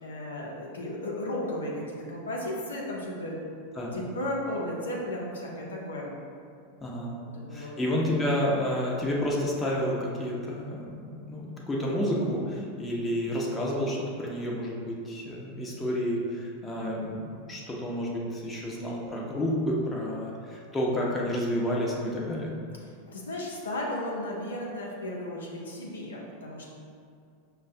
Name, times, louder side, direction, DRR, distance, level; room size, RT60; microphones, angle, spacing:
voice 1, 0.0-3.5 3.9-6.1 7.3-7.7 23.0-26.7, left 1 dB, 85° left, -3 dB, 0.6 m, -34 dB
voice 2, 6.8-7.2 7.5-22.5, equal, 15° left, -4 dB, 0.7 m, -30 dB
5.4 x 2.2 x 2.6 m, 2.3 s
hypercardioid pair, 95°, 0 cm